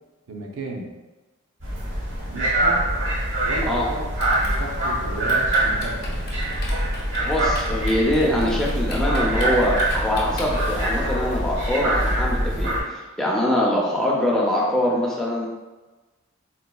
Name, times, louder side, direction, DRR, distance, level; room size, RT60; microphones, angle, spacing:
voice 1, 0.3-0.9 2.3-2.9 3.4-6.2, right 1 dB, 80° right, 0 dB, 0.6 m, -33 dB
sound 1, 1.6-12.8, right 1 dB, 55° right, 1.0 m, -24 dB
Typing, 4.1-11.0, left 1 dB, 50° left, 0.6 m, -37 dB
voice 2, 7.2-15.5, left 1 dB, 5° left, -4 dB, 0.4 m, -23 dB
3.9 x 2.2 x 2.2 m, 1.2 s
head